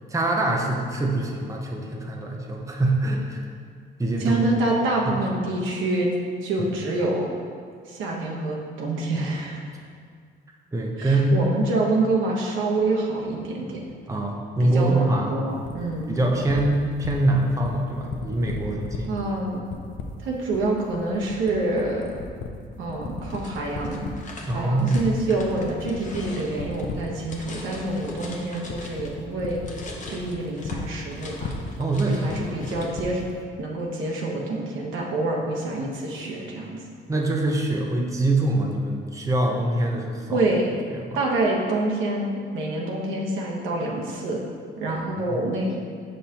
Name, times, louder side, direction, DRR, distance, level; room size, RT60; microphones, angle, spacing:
voice 1, 0.1-3.4 4.0-4.4 5.0-5.2 6.6-6.7 10.7-11.4 14.1-15.4 16.1-19.1 24.5-25.0 31.8-32.6 37.1-40.4 40.9-41.2, right 2 dB, 15° right, 0 dB, 0.7 m, -24 dB
voice 2, 4.2-6.1 6.4-7.3 7.9-9.7 11.0-13.8 14.6-16.2 19.1-19.6 20.2-22.1 22.8-24.0 24.5-29.6 30.1-31.6 32.0-33.2 33.6-36.8 40.3-40.7 41.1-44.4 44.8-45.7, right 2 dB, 80° right, -2 dB, 1.1 m, -26 dB
sound 1, 15.6-33.4, left 5 dB, 70° left, 0.6 m, -35 dB
sound 2, 23.2-29.2 29.5-33.0, left 2 dB, 40° left, 0.9 m, -42 dB
6.4 x 5.4 x 2.9 m, 2.1 s
cardioid pair, 90°, 20 cm